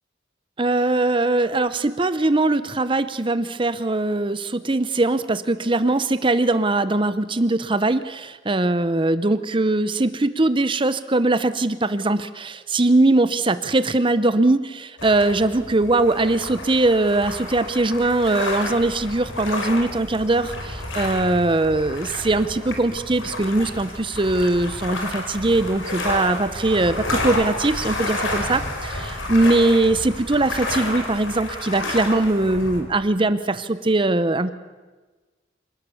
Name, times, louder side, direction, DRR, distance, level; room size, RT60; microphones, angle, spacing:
voice 1, 0.6-34.5, right 2 dB, 25° right, 13 dB, 0.7 m, -21 dB
sound 1, 15.0-32.8, left 2 dB, 85° left, 5.0 m, -30 dB
27.0 x 19.0 x 7.1 m, 1.3 s
head